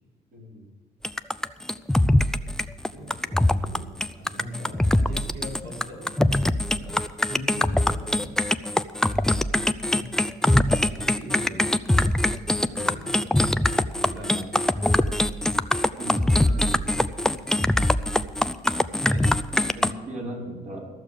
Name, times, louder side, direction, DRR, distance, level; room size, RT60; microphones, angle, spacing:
voice 1, 0.3-0.6 16.0-16.8 19.7-20.9, right 1 dB, 50° right, -3 dB, 4.5 m, -37 dB
sound 1, 1.0-19.9, left 1 dB, 5° left, 0.4 m, -23 dB
voice 2, 2.8-6.1 6.4-8.4 9.9-10.2 10.5-11.7 11.9-13.7 14.0-14.6 16.0-16.5 16.9-17.1 19.1-19.6, left 1 dB, 90° right, -4 dB, 5.4 m, -41 dB
14.5 x 6.7 x 8.2 m, 1.3 s
cardioid pair, 110°, 17 cm